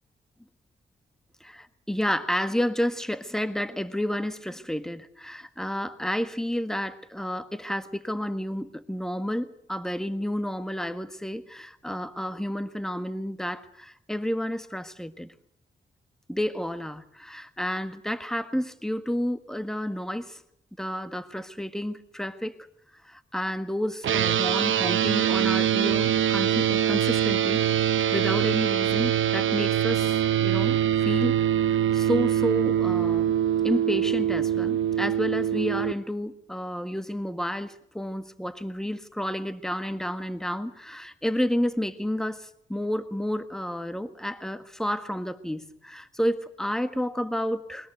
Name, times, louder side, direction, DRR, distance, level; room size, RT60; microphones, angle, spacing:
voice 1, 1.4-15.3 16.3-20.4 20.8-22.5 23.0-31.4 31.6-33.3 33.6-47.9, equal, ahead, 10 dB, 1.6 m, -30 dB
sound 1, 24.0-35.9, right 10 dB, 85° right, 0.8 m, -24 dB
21.5 x 21.0 x 8.2 m, 0.70 s
cardioid pair, 75°, 20 cm